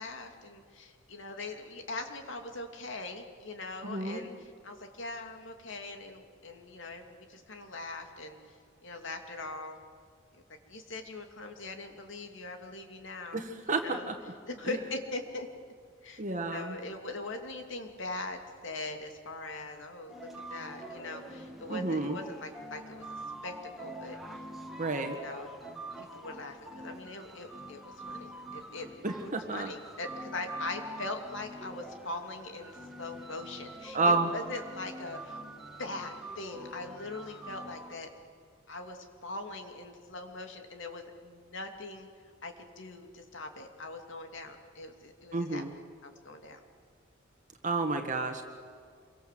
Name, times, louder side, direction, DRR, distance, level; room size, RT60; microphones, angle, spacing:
voice 1, 0.0-9.8 10.3-10.4 10.7-14.1 14.5-15.5 16.0-16.2 16.5-23.0 23.4-24.4 25.1-25.5 26.0-28.9 29.3-35.5 35.8-38.1 38.7-42.1 42.4-45.6 46.0-46.6, left 2 dB, 65° left, 5 dB, 2.7 m, -41 dB
voice 2, 3.8-4.2 13.3-14.1 14.7-14.8 16.2-16.8 21.7-22.2 24.8-25.2 29.0-29.7 33.9-34.3 45.3-45.7 47.6-48.4, right 3 dB, 40° right, 4 dB, 1.6 m, -30 dB
sound 1, 20.1-38.0, right 1 dB, ahead, 2.2 m, -45 dB
27.5 x 23.5 x 7.7 m, 2.1 s
head